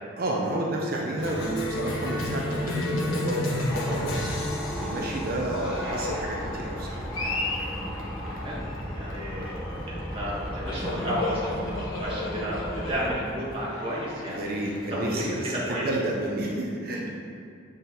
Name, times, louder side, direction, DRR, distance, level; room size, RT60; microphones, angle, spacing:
voice 1, 0.2-4.2 4.8-7.1 14.3-17.1, right 1 dB, 50° right, -2 dB, 0.7 m, -30 dB
Cheering, 1.2-16.4, left 2 dB, 85° left, 1.0 m, -33 dB
sound 1, 3.7-13.2, equal, ahead, 0.8 m, -35 dB
voice 2, 8.9-9.5 9.8-11.7 12.0-14.5 14.9-15.9, equal, 30° right, -7 dB, 1.5 m, -32 dB
7.7 x 3.9 x 4.0 m, 2.3 s
head